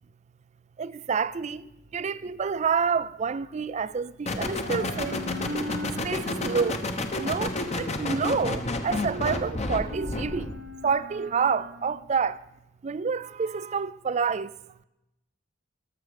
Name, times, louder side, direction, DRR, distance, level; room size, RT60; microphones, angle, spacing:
voice 1, 0.8-1.6 1.9-5.2 6.0-6.8 7.2-10.5 10.8-12.4 12.8-14.5, right 5 dB, 35° right, 0.3 m, -28 dB
sound 1, 1.3-4.2 4.4-12.6, equal, 55° right, 0.9 m, -41 dB
sound 2, 4.3-10.6, left 2 dB, 30° left, 0.9 m, -31 dB
17.5 x 7.4 x 5.1 m
head